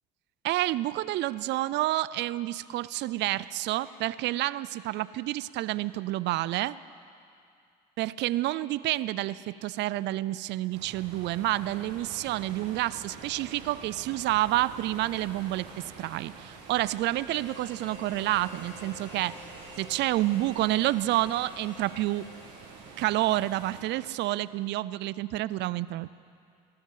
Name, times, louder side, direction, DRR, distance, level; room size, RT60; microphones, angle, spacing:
voice 1, 0.4-6.8 8.0-19.4 19.8-22.2 23.0-26.1, right 16 dB, 60° right, 18 dB, 0.4 m, -29 dB
sound 1, 10.7-23.8, right 5 dB, 85° right, 2.2 m, -47 dB
Harmonica, 17.2-23.0, left 2 dB, 70° left, 4.3 m, -50 dB
17.5 x 12.5 x 5.6 m, 2.4 s
hypercardioid pair, 70°, 21 cm